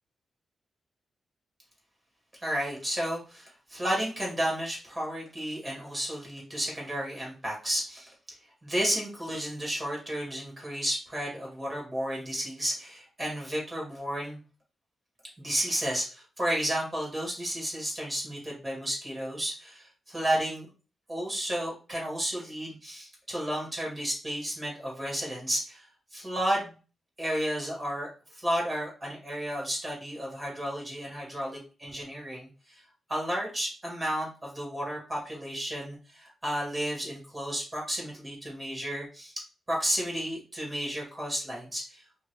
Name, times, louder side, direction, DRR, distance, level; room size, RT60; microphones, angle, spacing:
voice 1, 2.4-8.1 8.6-14.4 15.4-20.7 21.1-25.8 26.1-26.7 27.2-32.8 33.1-39.3 39.7-42.0, equal, 15° right, -3 dB, 2.0 m, -32 dB
5.1 x 3.2 x 2.2 m, 0.35 s
wide cardioid pair, 140°, 0 cm